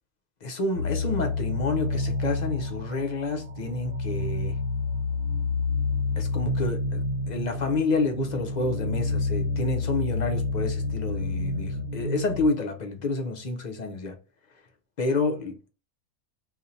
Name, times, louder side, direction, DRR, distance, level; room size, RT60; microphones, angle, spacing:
voice 1, 0.4-4.6 6.2-14.2 15.0-15.7, left 3 dB, 50° left, 0.5 m, -29 dB
sound 1, 0.8-12.5, left 3 dB, 80° right, 1.0 m, -29 dB
2.6 x 2.5 x 4.2 m
omnidirectional pair, 1.4 m